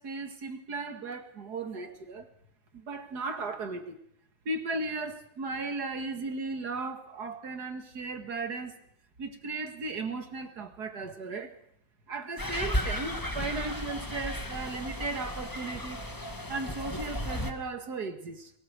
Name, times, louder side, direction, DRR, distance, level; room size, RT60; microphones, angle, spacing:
voice 1, 0.0-2.3 2.7-4.0 4.5-8.8 9.2-11.5 12.1-16.0 16.5-18.5, right 3 dB, 60° right, 2.4 m, -36 dB
sound 1, 12.4-17.5, equal, 10° left, 1.5 m, -34 dB
22.5 x 19.0 x 6.6 m
omnidirectional pair, 2.0 m